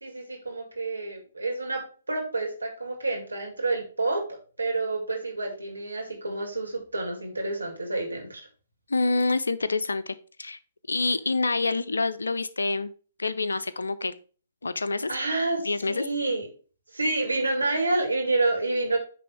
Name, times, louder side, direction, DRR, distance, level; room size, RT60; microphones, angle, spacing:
voice 1, 0.0-1.8 2.1-4.2 4.6-8.4 15.1-16.5 16.9-19.0, right 2 dB, 85° right, 2 dB, 2.5 m, -28 dB
voice 2, 8.9-10.6 10.9-12.9 13.2-14.1 14.6-15.1 15.6-16.0, left 3 dB, 75° left, 14 dB, 0.6 m, -27 dB
9.3 x 3.5 x 4.6 m, 0.39 s
figure-of-eight pair, 125°, 0 cm